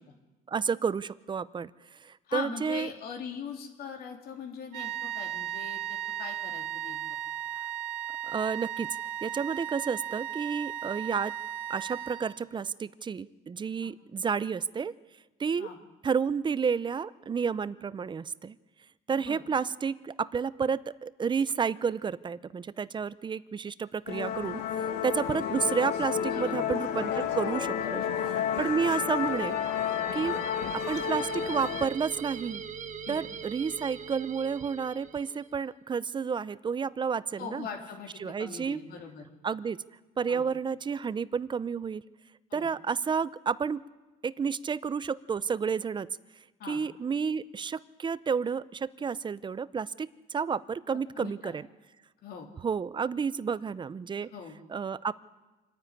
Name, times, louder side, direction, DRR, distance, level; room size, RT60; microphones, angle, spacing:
voice 1, 0.5-1.7 2.0-2.9 7.5-7.7 8.3-8.9 9.2-11.3 11.7-14.9 15.4-15.7 16.0-18.6 19.1-28.0 28.6-29.6 30.1-30.4 30.9-32.6 33.1-37.7 38.2-38.8 39.4-39.8 40.2-42.0 42.5-43.8 44.2-46.1 46.7-51.7 52.6-54.3 54.7-55.1, right 6 dB, 25° right, 18 dB, 0.6 m, -31 dB
voice 2, 2.3-7.0 13.8-13.9 15.6-15.8 19.2-19.4 26.2-26.7 27.8-28.1 28.4-28.5 30.0-30.2 33.0-33.2 37.4-39.3 40.3-40.4 42.5-42.7 46.6-46.8 51.2-51.5 52.2-52.5 54.3-54.5, left 6 dB, 65° left, 3 dB, 3.3 m, -41 dB
sound 1, 4.7-12.6, right 11 dB, 85° right, 1.8 m, -36 dB
Musical instrument, 24.1-31.9, left 8 dB, 85° left, 2.2 m, -31 dB
sound 2, 29.1-35.5, right 7 dB, 45° right, 1.4 m, -42 dB
26.5 x 10.0 x 9.7 m, 1.2 s
cardioid pair, 110°, 17 cm